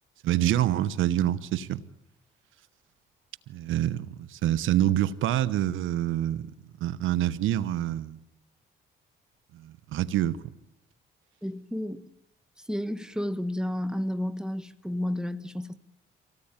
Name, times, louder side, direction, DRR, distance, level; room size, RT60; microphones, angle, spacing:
voice 1, 0.2-1.8 3.5-6.5 6.8-8.2 9.5-10.5, right 12 dB, 80° right, 1.0 m, -26 dB
voice 2, 11.4-12.1 12.7-15.8, left 1 dB, 5° right, 1.3 m, -31 dB
25.5 x 18.0 x 8.9 m
cardioid pair, 90°, 20 cm